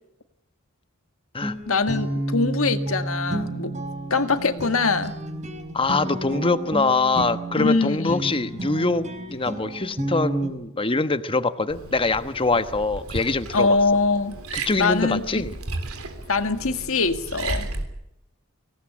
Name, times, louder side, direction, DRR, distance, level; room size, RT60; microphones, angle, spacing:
Guitar, 1.4-10.5, right 1 dB, 35° right, 4.6 m, -31 dB
voice 1, 1.7-3.8 4.1-5.1 7.6-8.4 13.5-14.4 14.8-15.4 16.3-17.7, left 3 dB, 70° left, 8 dB, 1.9 m, -23 dB
voice 2, 5.7-13.8 14.7-15.5, left 3 dB, 25° left, 11 dB, 1.2 m, -24 dB
Liquid, 11.7-17.8, right 2 dB, 85° right, 3.5 m, -34 dB
25.0 x 18.5 x 8.7 m, 0.81 s
head